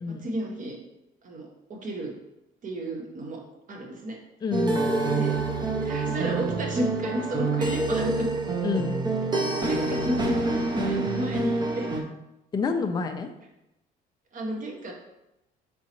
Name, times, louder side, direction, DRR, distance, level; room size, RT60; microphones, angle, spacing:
voice 1, 0.1-0.8 1.2-2.1 2.6-3.4 3.7-4.2 5.1-5.4 5.8-8.3 9.6-11.9 14.3-14.9, right 1 dB, 50° right, 1 dB, 1.0 m, -33 dB
voice 2, 4.4-5.1 8.6-8.9 12.5-13.3, left 4 dB, 25° left, 6 dB, 0.4 m, -28 dB
sound 1, 4.5-12.0, right 3 dB, 25° right, 0.6 m, -27 dB
4.1 x 3.6 x 2.9 m, 0.90 s
cardioid pair, 110°, 17 cm